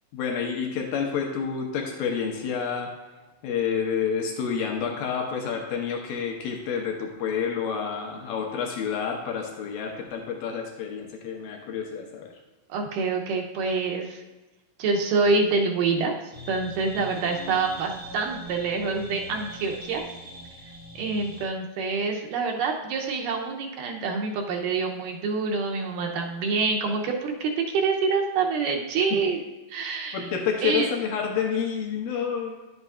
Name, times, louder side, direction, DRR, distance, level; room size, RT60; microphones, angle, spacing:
voice 1, 0.1-2.9 3.4-12.3 29.1-29.2 30.1-32.5, left 6 dB, 85° left, 1 dB, 2.6 m, -29 dB
voice 2, 12.7-14.2 14.8-16.1 16.5-20.0 21.0-29.4 29.7-30.3 30.6-30.9, right 4 dB, 80° right, 1 dB, 2.3 m, -26 dB
sound 1, 16.3-21.4, equal, 40° right, 0.7 m, -41 dB
11.0 x 8.0 x 2.4 m, 1.1 s
omnidirectional pair, 3.9 m